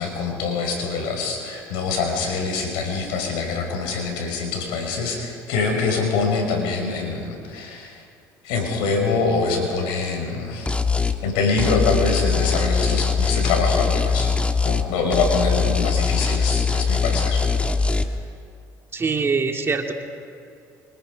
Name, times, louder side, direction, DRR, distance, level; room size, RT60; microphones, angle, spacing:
voice 1, 0.0-8.0 8.4-10.7 11.2-14.3 14.6-17.4, left 4 dB, 80° left, 2 dB, 5.8 m, -24 dB
sound 1, 10.7-11.2 11.6-14.9 15.1-18.0, left 5 dB, 15° left, 1.5 m, -21 dB
voice 2, 18.9-19.9, right 4 dB, 30° right, 3 dB, 2.4 m, -23 dB
26.0 x 25.0 x 5.3 m, 2.5 s
supercardioid pair, 90°, 8 cm